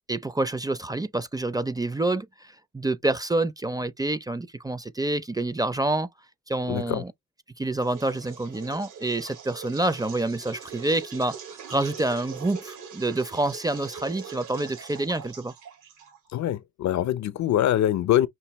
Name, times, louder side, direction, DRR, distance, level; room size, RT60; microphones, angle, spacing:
voice 1, 0.1-6.1 6.5-7.1 7.6-15.5, right 2 dB, 15° right, 0.5 m, -27 dB
voice 2, 6.7-7.0 16.3-18.3, left 12 dB, 65° left, 0.7 m, -24 dB
sound 1, 7.8-16.4, right 7 dB, 85° right, 2.4 m, -42 dB
5.8 x 2.6 x 3.0 m
cardioid pair, 90°, 30 cm